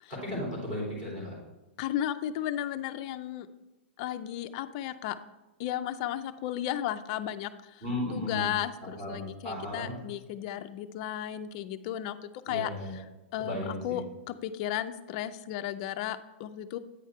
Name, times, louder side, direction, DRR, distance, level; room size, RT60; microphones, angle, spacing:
voice 1, 0.1-1.3 7.8-8.5 9.0-10.0 12.5-12.9 13.4-14.0, left 1 dB, 15° right, -5 dB, 2.9 m, -35 dB
voice 2, 1.8-3.5 4.0-5.2 5.6-7.8 8.1-12.7 13.3-16.8, left 11 dB, 30° left, 9 dB, 0.4 m, -34 dB
8.9 x 5.0 x 4.4 m, 1.0 s
hypercardioid pair, 170°, 7 cm